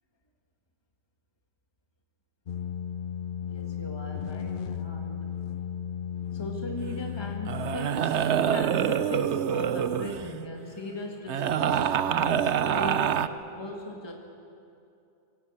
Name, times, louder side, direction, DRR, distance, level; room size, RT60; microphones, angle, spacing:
sound 1, 2.5-7.8, left 8 dB, 55° left, 0.8 m, -35 dB
voice 1, 3.4-5.3 6.3-14.1, left 2 dB, 25° left, 2 dB, 1.8 m, -39 dB
sound 2, 6.8-7.1 7.5-10.4 11.3-13.3, right 9 dB, 85° right, 1.0 m, -26 dB
24.5 x 18.0 x 8.8 m, 2.7 s
omnidirectional pair, 1.1 m